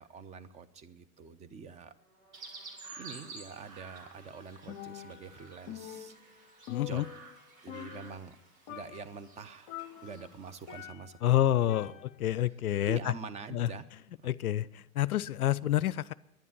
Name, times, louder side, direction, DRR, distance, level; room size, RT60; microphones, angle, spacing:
voice 1, 0.0-1.9 3.0-7.0 7.6-8.3 8.7-9.8 10.0-11.5 11.8-12.0 12.9-13.8 14.2-14.3, right 5 dB, 15° right, 11 dB, 0.6 m, -46 dB
sound 1, 1.9-8.2, equal, 85° right, 7.3 m, -63 dB
Chirp tweet, 2.3-10.8, right 3 dB, 65° right, 3.2 m, -52 dB
Percussion, 4.7-5.4 5.7-7.4 7.7-8.4 8.7-9.2 9.7-11.3 11.7-12.3, left 12 dB, 35° left, 0.9 m, -46 dB
voice 2, 6.7-7.1 11.2-11.9 12.2-13.1 13.5-13.7 14.2-16.1, left 12 dB, 70° left, 19 dB, 0.5 m, -28 dB
11.0 x 10.5 x 9.8 m, 0.90 s
figure-of-eight pair, 95°, 45 cm